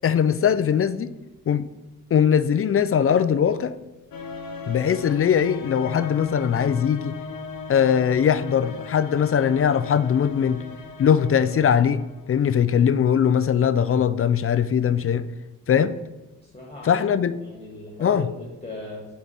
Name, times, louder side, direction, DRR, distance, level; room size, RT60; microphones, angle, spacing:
voice 1, 0.0-1.1 1.5-1.7 2.1-3.8 4.7-7.1 7.7-10.6 11.0-12.0 12.3-15.3 15.7-15.9 16.8-17.4 18.0-18.3, left 8 dB, 40° left, 13 dB, 0.4 m, -20 dB
sound 1, 4.1-12.5, left 4 dB, 85° left, 0.8 m, -37 dB
voice 2, 16.5-17.0 17.4-19.0, left 2 dB, 20° left, -2 dB, 1.5 m, -37 dB
7.3 x 4.3 x 4.0 m, 1.1 s
cardioid pair, 75°, 34 cm